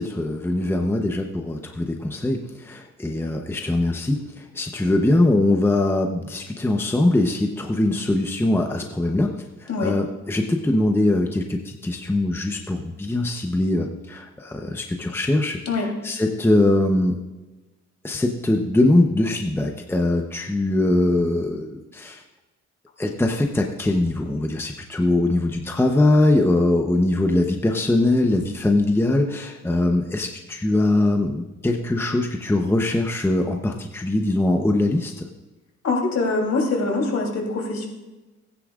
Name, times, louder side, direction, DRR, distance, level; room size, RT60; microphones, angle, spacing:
voice 1, 0.0-9.3 9.6-15.6 16.0-17.2 18.0-22.2 23.0-35.2, left 2 dB, 10° left, 3 dB, 0.9 m, -22 dB
voice 2, 35.8-37.9, left 3 dB, 60° left, 0 dB, 3.3 m, -23 dB
18.0 x 9.9 x 2.5 m, 1.1 s
cardioid pair, 105°, 30 cm